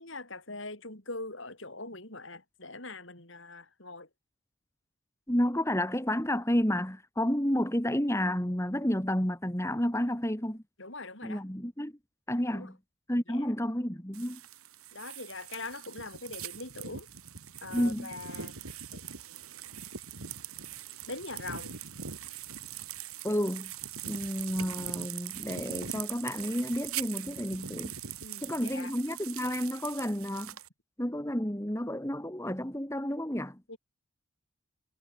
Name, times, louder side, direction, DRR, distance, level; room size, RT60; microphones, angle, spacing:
voice 1, 0.0-4.1 10.8-11.4 12.5-12.7 13.3-13.5 14.9-17.1 17.6-18.5 18.9-19.0 21.1-21.7 28.2-28.9 33.7-33.8, left 3 dB, 60° left, 6.0 m, -42 dB
voice 2, 5.3-10.6 11.2-11.9 12.3-12.8 13.1-14.4 17.7-18.1 23.2-23.7 24.1-27.9 28.4-30.5 31.0-33.6, equal, 15° left, 2.3 m, -31 dB
sound 1, 14.1-30.7, right 9 dB, 85° right, 2.9 m, -41 dB
head